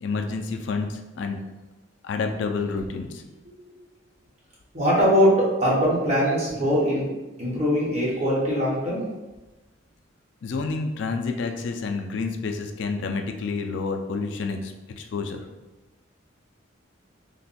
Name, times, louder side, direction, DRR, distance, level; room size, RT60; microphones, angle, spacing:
voice 1, 0.0-1.4 2.0-3.2 10.4-15.4, left 4 dB, 65° left, 4 dB, 0.4 m, -29 dB
voice 2, 4.7-7.1 7.4-9.0, equal, 35° right, -6 dB, 1.2 m, -21 dB
3.3 x 2.2 x 4.1 m, 1.1 s
head